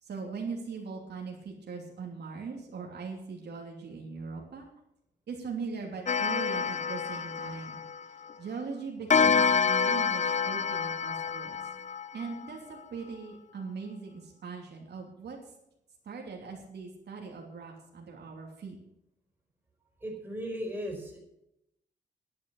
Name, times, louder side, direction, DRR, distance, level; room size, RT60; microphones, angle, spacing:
voice 1, 0.0-4.7 5.3-7.8 8.4-11.6 12.1-15.4 16.0-18.8, right 5 dB, 65° right, 0 dB, 3.0 m, -40 dB
Clock, 6.1-8.3 9.1-12.5, left 6 dB, 40° left, 0.6 m, -28 dB
voice 2, 20.0-21.2, equal, 10° right, 0 dB, 4.6 m, -36 dB
11.0 x 11.0 x 6.5 m, 0.81 s
wide cardioid pair, 155°, 19 cm